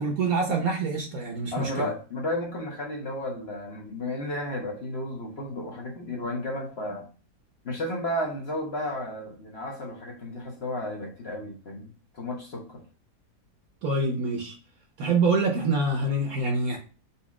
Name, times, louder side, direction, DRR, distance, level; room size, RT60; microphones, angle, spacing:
voice 1, 0.0-1.9 13.8-14.5 15.0-16.8, right 3 dB, 65° right, 1.1 m, -26 dB
voice 2, 1.5-7.0 7.6-12.8, left 1 dB, 45° left, 1.0 m, -33 dB
4.2 x 2.3 x 4.6 m
omnidirectional pair, 1.7 m